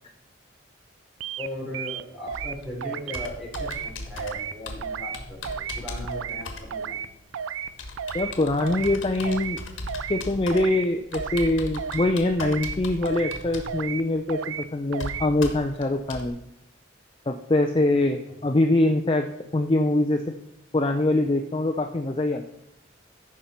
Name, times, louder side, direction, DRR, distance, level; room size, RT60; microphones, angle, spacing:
sound 1, 1.2-1.5 1.7-2.5 2.8-3.3 3.5-3.9 4.2-4.5 4.8-5.2 5.4-5.8 6.1-6.4 6.7-7.1 7.3-7.7 8.0-8.3 8.6-9.0 9.2-9.6 9.9-10.2 10.5-10.9 11.1-11.5 11.8-12.1 12.4-12.8 13.0-13.4 13.7-14.0 14.3-14.6 14.9-15.3, right 8 dB, 85° right, 0.4 m, -33 dB
voice 1, 1.4-7.0 18.3-18.4, left 1 dB, ahead, -5 dB, 3.8 m, -38 dB
Computer keyboard, 2.3-16.3, left 2 dB, 80° left, 1.5 m, -39 dB
voice 2, 8.1-9.6 10.1-16.4 17.3-19.3 19.5-20.3 20.7-22.4, left 2 dB, 25° left, 4 dB, 0.5 m, -23 dB
14.5 x 5.7 x 4.3 m, 0.88 s
head